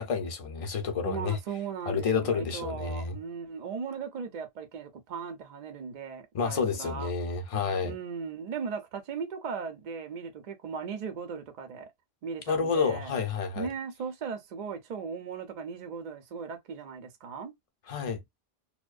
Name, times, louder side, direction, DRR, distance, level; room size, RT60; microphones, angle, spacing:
voice 1, 0.0-1.4 1.9-3.2 6.3-7.9 12.5-13.7 17.9-18.2, left 5 dB, 45° left, 0.5 m, -29 dB
voice 2, 1.0-7.1 7.8-11.9 12.2-13.2 13.5-17.5, right 6 dB, 55° right, 0.6 m, -37 dB
2.5 x 2.1 x 2.3 m
omnidirectional pair, 1.0 m